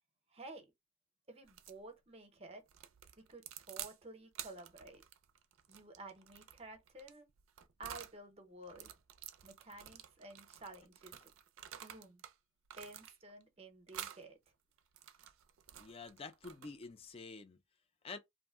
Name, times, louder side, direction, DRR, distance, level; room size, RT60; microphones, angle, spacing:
voice 1, 0.3-0.7 1.3-2.6 3.2-5.0 5.7-7.3 7.8-8.9 9.4-11.3 11.8-12.2 12.8-14.4, right 2 dB, 30° right, 0.7 m, -52 dB
sound 1, 1.5-1.8 2.7-4.0 4.3-8.2 8.6-12.3 12.7-13.4 13.9-14.2 14.8-16.9, right 11 dB, 85° right, 0.4 m, -51 dB
voice 2, 15.7-17.6 18.0-18.2, left 4 dB, 30° left, 0.4 m, -48 dB
2.6 x 2.0 x 3.5 m
head